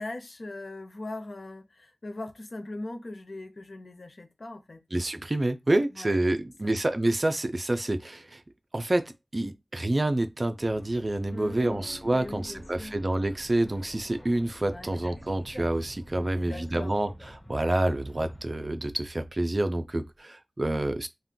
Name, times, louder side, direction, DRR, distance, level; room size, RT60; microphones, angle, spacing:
voice 1, 0.0-4.8 5.9-6.2 6.6-6.8 11.3-13.0 14.6-14.9 16.2-16.9, left 2 dB, 65° left, 0.5 m, -40 dB
voice 2, 4.9-8.4 8.7-21.1, right 1 dB, 40° right, 0.4 m, -28 dB
sound 1, 10.6-18.4, equal, 30° left, 1.3 m, -48 dB
sound 2, 19.8-20.2, equal, 5° left, 1.2 m, -53 dB
2.4 x 2.2 x 3.6 m
wide cardioid pair, 70°, 0 cm